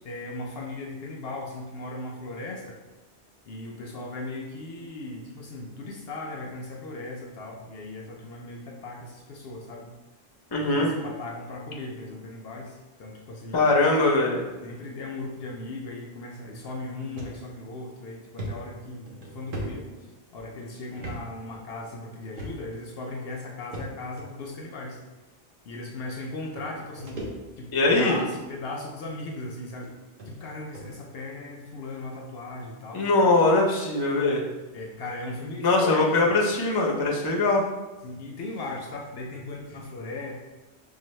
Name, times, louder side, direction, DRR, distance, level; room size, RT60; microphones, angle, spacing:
voice 1, 0.0-2.8 3.5-9.9 10.6-13.6 14.6-19.9 20.3-25.0 25.7-27.2 27.6-29.9 30.3-33.1 34.7-36.3 38.0-40.3, left 2 dB, 65° left, 0 dB, 0.7 m, -37 dB
voice 2, 10.5-10.9 13.5-14.5 27.7-28.2 32.9-34.4 35.6-37.6, left 2 dB, 25° left, -2 dB, 0.5 m, -21 dB
sound 1, 17.2-17.4 17.8-17.9 18.4-20.4 21.0-21.2 21.5-21.6 22.4-22.8 23.7-24.3 25.2-25.3 26.2-26.3 26.6-27.8 28.2-28.5 29.2-29.3 29.8-29.9 30.2-30.3 30.7-30.9, right 1 dB, 55° right, 0.9 m, -38 dB
5.5 x 2.2 x 3.1 m, 1.1 s
omnidirectional pair, 1.2 m